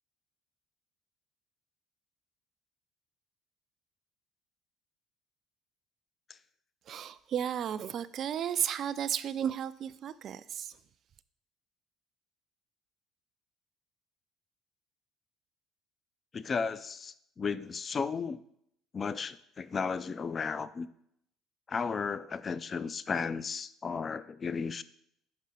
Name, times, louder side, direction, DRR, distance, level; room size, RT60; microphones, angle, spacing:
voice 1, 6.9-10.7, right 9 dB, 55° right, 0.3 m, -33 dB
voice 2, 16.3-18.4 18.9-20.9 21.7-24.8, left 5 dB, 35° left, 0.3 m, -34 dB
5.5 x 5.5 x 3.7 m
hypercardioid pair, 60°, 0 cm